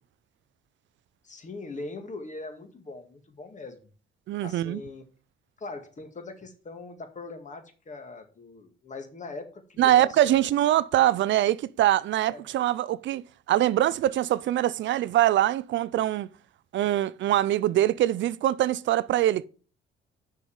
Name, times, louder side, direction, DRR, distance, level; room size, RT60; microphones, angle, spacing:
voice 1, 1.2-3.8 4.4-5.0 5.6-10.4 12.2-12.4, left 3 dB, 40° left, 1.9 m, -41 dB
voice 2, 4.3-4.8 9.8-16.3 16.7-19.5, right 13 dB, 70° right, 0.5 m, -23 dB
6.3 x 5.3 x 6.9 m
cardioid pair, 90°, 20 cm